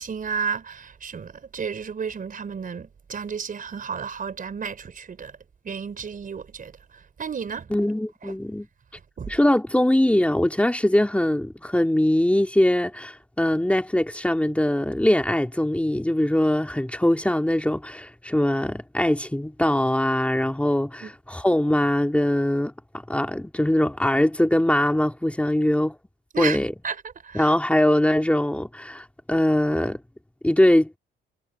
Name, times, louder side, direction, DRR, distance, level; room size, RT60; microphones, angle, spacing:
voice 1, 0.0-5.3 5.6-7.7 8.2-8.3 9.2-9.4 21.0-21.1 26.3-26.6 26.8-27.0 27.2-27.5, right 6 dB, 45° right, 4.7 m, -32 dB
voice 2, 7.7-8.7 9.3-22.7 23.1-26.0 26.4-26.7 27.3-30.0 30.4-30.9, left 1 dB, 5° left, 2.7 m, -22 dB
cardioid pair, 90°, 20 cm